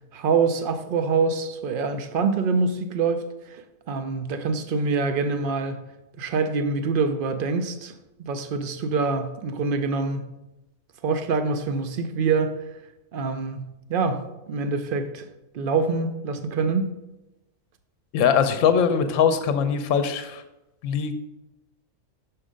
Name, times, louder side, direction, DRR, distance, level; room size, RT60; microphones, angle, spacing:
voice 1, 0.1-5.9 6.2-7.9 8.2-10.3 11.0-12.6 13.1-15.2 15.5-16.9, right 4 dB, 60° right, 0.6 m, -25 dB
voice 2, 18.1-20.4 20.8-21.1, left 7 dB, 70° left, 1.0 m, -21 dB
6.3 x 4.5 x 5.0 m
omnidirectional pair, 1.4 m